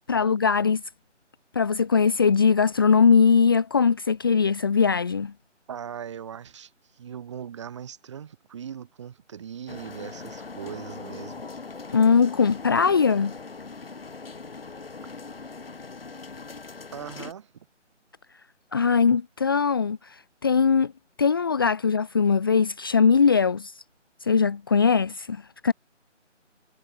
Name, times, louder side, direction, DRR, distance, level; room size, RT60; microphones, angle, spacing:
voice 1, 0.1-0.8 1.5-5.3 11.9-13.4 18.7-20.9 21.2-23.7 24.2-25.7, left 5 dB, 20° left, 1.4 m, -21 dB
voice 2, 5.7-11.5 16.9-17.7, right 8 dB, 25° right, 6.2 m, -39 dB
sound 1, 9.7-17.3, left 4 dB, 50° left, 7.7 m, -40 dB
figure-of-eight pair, 165°, 37 cm